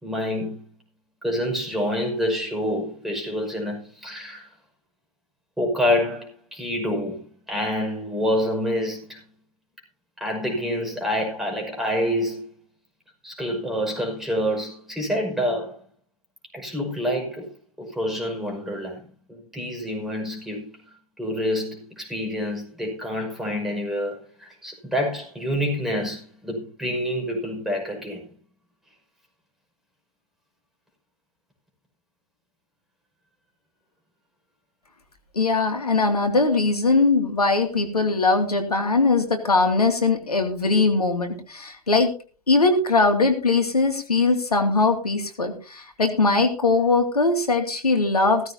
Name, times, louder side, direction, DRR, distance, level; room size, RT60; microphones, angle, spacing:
voice 1, 0.0-0.6 1.2-4.5 5.6-9.2 10.2-12.5 13.2-15.8 16.5-17.5 17.8-19.0 19.3-20.7 21.2-28.2 37.9-38.1, equal, ahead, 5.7 m, -27 dB
voice 2, 35.3-42.1 42.5-48.5, left 3 dB, 80° left, 2.4 m, -21 dB
16.0 x 15.0 x 2.8 m
figure-of-eight pair, 105°, 19 cm